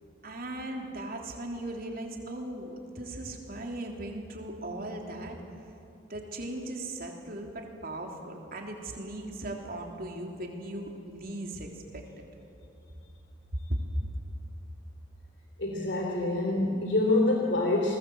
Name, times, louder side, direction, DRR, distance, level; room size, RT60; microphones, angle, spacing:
voice 1, 0.2-5.4 6.1-12.0 13.5-13.8, right 1 dB, 50° right, 1 dB, 3.5 m, -38 dB
voice 2, 15.6-18.0, left 2 dB, 65° left, 0 dB, 3.1 m, -26 dB
30.0 x 21.0 x 7.9 m, 2.6 s
head